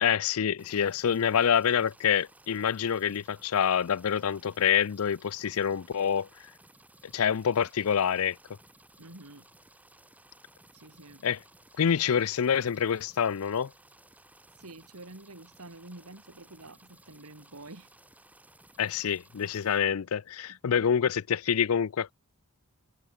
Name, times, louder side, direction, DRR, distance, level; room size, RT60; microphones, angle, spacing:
voice 1, 0.0-6.3 7.0-8.4 11.2-11.4 11.8-13.7 18.8-22.1, left 8 dB, 70° left, 0.5 m, -26 dB
sound 1, 0.6-19.8, right 1 dB, 5° right, 5.6 m, -58 dB
voice 2, 9.0-9.5 10.7-11.2 14.6-17.9 20.5-20.9, right 2 dB, 80° right, 3.0 m, -48 dB
open air
head